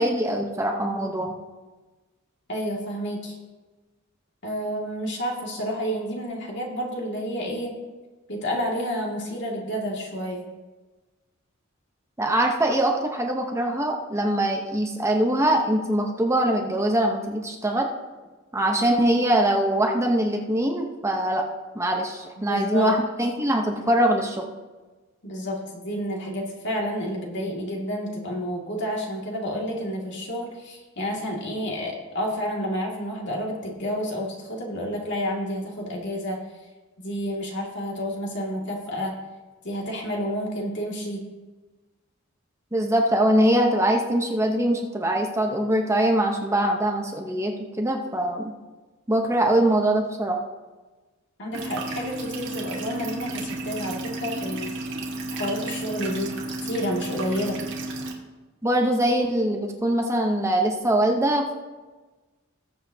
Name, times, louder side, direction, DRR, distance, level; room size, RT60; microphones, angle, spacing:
voice 1, 0.0-1.3 12.2-17.9 18.5-21.4 21.7-24.5 42.7-48.5 49.1-50.4 58.6-61.5, right 1 dB, 15° right, 1 dB, 1.0 m, -23 dB
voice 2, 2.5-3.4 4.4-7.8 8.3-10.5 22.4-23.0 25.2-36.4 37.0-39.1 39.6-41.2 51.4-54.7 55.3-56.3 56.6-57.6, equal, 60° left, -1 dB, 2.4 m, -30 dB
sound 1, 51.5-58.1, right 2 dB, 65° right, 1.6 m, -32 dB
20.0 x 7.5 x 2.9 m, 1.2 s
head